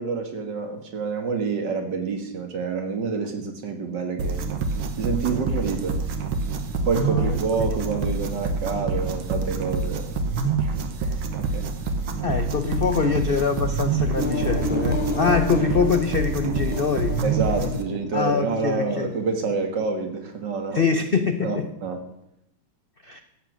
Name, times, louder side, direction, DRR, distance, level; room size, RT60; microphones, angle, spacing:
voice 1, 0.0-4.4 5.0-6.0 6.9-10.1 11.0-11.6 17.2-20.8 21.4-22.0, right 4 dB, 60° right, 5 dB, 2.4 m, -27 dB
sound 1, 4.2-17.8, right 4 dB, 85° right, 2.0 m, -27 dB
voice 2, 7.0-7.7 12.2-17.2 17.6-17.8 18.1-19.1 20.7-21.7 23.0-23.2, left 5 dB, 70° left, 8 dB, 0.5 m, -24 dB
sound 2, 14.2-19.6, left 1 dB, 5° right, 2.9 m, -30 dB
14.5 x 8.5 x 6.2 m, 0.79 s
omnidirectional pair, 2.2 m